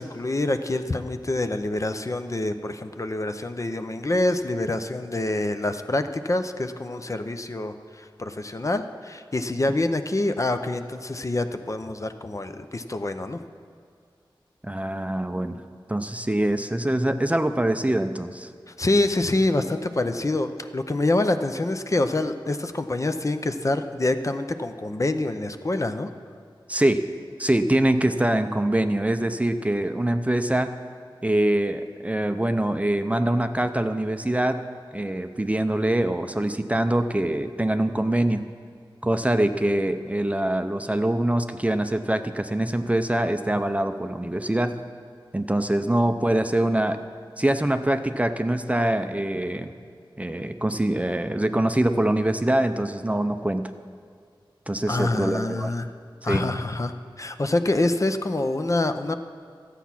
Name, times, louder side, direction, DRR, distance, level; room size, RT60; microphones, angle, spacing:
voice 1, 0.0-13.4 18.8-26.1 54.9-55.9 56.2-59.2, left 2 dB, 35° left, 8 dB, 0.6 m, -26 dB
voice 2, 14.6-15.6 15.9-18.5 26.7-27.0 27.4-30.7 31.2-34.6 34.9-38.4 39.0-44.8 45.3-47.0 47.4-49.7 50.2-53.6 54.7-55.7 56.3-56.4, right 1 dB, 15° right, 8 dB, 0.5 m, -24 dB
13.0 x 8.3 x 5.9 m, 2.1 s
wide cardioid pair, 70°, 9 cm